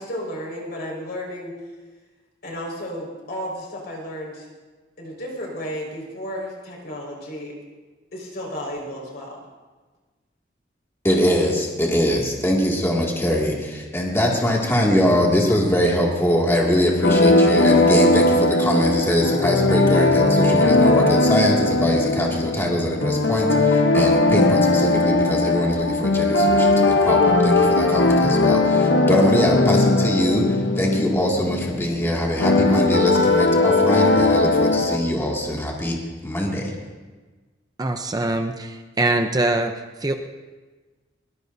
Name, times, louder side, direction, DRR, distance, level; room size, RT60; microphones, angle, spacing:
voice 1, 0.0-1.6 2.4-4.5 5.0-7.6 8.1-9.4, equal, 60° left, -2 dB, 5.2 m, -33 dB
voice 2, 11.0-36.7, equal, 15° left, -3 dB, 2.3 m, -22 dB
sound 1, 17.0-35.0, left 2 dB, 85° left, 1.0 m, -18 dB
voice 3, 37.8-39.7 40.0-40.1, right 2 dB, 20° right, 5 dB, 0.7 m, -23 dB
22.5 x 20.0 x 2.7 m, 1.3 s
head